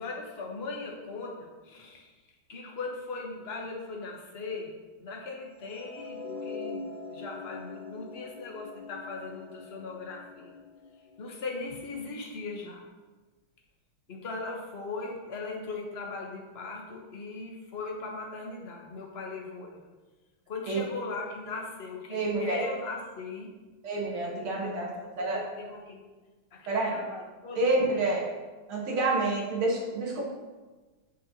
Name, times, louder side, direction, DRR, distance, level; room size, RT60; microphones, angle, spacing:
voice 1, 0.0-2.1 2.5-4.7 5.0-10.6 11.2-12.8 14.1-19.8 20.5-23.5 24.5-26.0 26.5-27.6, left 3 dB, 40° left, 0 dB, 1.0 m, -39 dB
sound 1, 5.6-11.8, left 4 dB, 70° left, 2.2 m, -43 dB
voice 2, 22.1-22.7 23.8-24.9 25.2-25.4 26.7-27.0 27.6-28.2 28.7-30.2, right 2 dB, 85° right, -3 dB, 2.3 m, -28 dB
7.9 x 6.4 x 2.8 m, 1.3 s
omnidirectional pair, 2.2 m